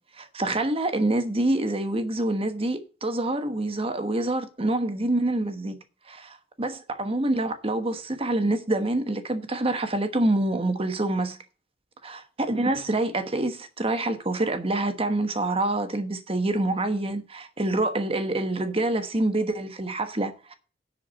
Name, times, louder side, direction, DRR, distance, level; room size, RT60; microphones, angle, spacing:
voice 1, 0.2-5.8 6.1-11.4 12.0-20.5, right 2 dB, 30° right, 1.2 m, -26 dB
10.5 x 4.7 x 7.7 m
head